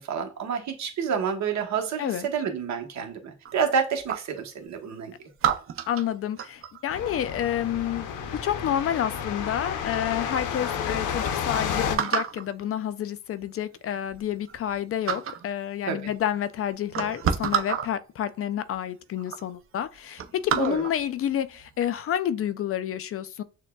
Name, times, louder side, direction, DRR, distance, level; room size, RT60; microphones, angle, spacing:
voice 1, 0.0-5.1 15.9-16.0 20.6-20.8, right 6 dB, 65° right, 1.0 m, -28 dB
sound 1, 3.4-4.4 5.4-6.8 8.5-8.9 9.5-9.6 9.9-10.5 10.9-11.0 11.2-11.3 12.0-12.5 13.4-13.5 13.9-14.8 15.0-15.5 16.3-16.4 16.8-17.9 18.7-18.8 19.2-19.4 19.8-21.0 21.5-21.8, right 8 dB, 45° right, 0.5 m, -29 dB
voice 2, 5.9-23.4, left 10 dB, 50° left, 0.4 m, -29 dB
sound 2, 6.9-12.0, left 7 dB, 90° left, 0.7 m, -31 dB
6.3 x 2.2 x 2.2 m
cardioid pair, 90°, 30 cm